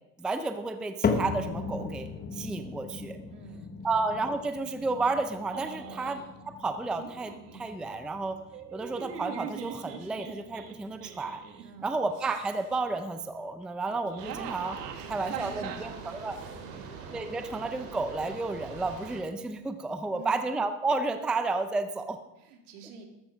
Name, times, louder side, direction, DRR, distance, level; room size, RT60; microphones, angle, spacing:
voice 1, 0.2-3.2 3.8-8.4 8.7-11.4 11.8-14.8 15.1-16.4 17.1-22.2, right 3 dB, ahead, 8 dB, 0.5 m, -32 dB
sound 1, 1.0-17.4 17.7-18.2 18.8-18.9 19.7-19.8, left 5 dB, 20° left, 1.2 m, -38 dB
voice 2, 3.3-3.7 5.8-6.1 11.6-12.1 14.9-16.9 20.1-20.5 22.4-23.0, right 2 dB, 70° right, 3 dB, 3.2 m, -49 dB
sound 2, 5.5-6.3 7.0-7.6 8.5-11.6 12.1-12.7 13.9-16.6, right 8 dB, 90° right, 2.0 m, -42 dB
sound 3, 14.2-19.2, right 5 dB, 50° right, 4.0 m, -43 dB
14.0 x 13.0 x 5.1 m, 0.97 s
supercardioid pair, 130°, 46 cm